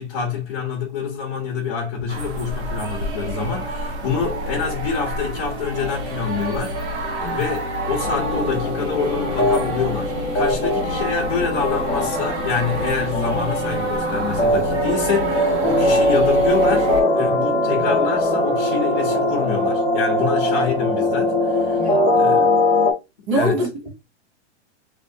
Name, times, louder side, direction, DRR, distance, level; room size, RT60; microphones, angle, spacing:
voice 1, 0.0-6.7 7.2-22.6 23.3-23.6, left 6 dB, 35° left, 1.0 m, -26 dB
sound 1, 2.1-17.0, right 1 dB, 65° right, 1.5 m, -29 dB
sound 2, 4.2-22.5, left 2 dB, ahead, 0.5 m, -38 dB
sound 3, 8.0-22.9, left 1 dB, 20° left, 1.4 m, -21 dB
voice 2, 21.8-22.5 23.3-23.9, right 1 dB, 25° right, 0.8 m, -25 dB
3.9 x 3.0 x 2.7 m
supercardioid pair, 180°, 35 cm